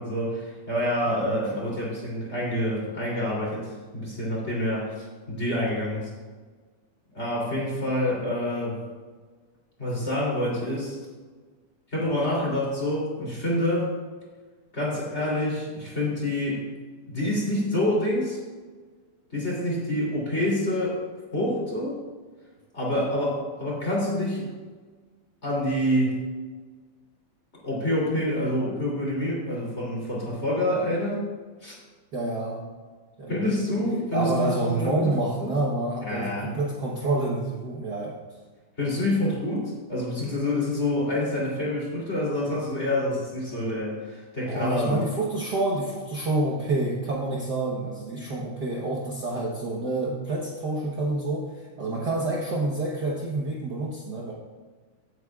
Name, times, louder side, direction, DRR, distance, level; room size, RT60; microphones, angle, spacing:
voice 1, 0.0-6.1 7.1-8.8 9.8-11.0 11.9-13.9 14.7-16.7 17.0-18.4 19.3-21.0 21.3-22.0 22.7-24.5 25.4-26.2 27.6-31.3 31.6-31.7 33.3-35.5 36.0-36.5 38.8-45.0, left 1 dB, 20° left, -5 dB, 3.1 m, -27 dB
voice 2, 1.0-1.7 22.9-23.0 32.1-32.6 33.2-33.8 34.1-38.1 44.5-54.3, right 2 dB, 65° right, -4 dB, 1.0 m, -28 dB
16.5 x 8.9 x 2.4 m, 1.4 s
omnidirectional pair, 3.7 m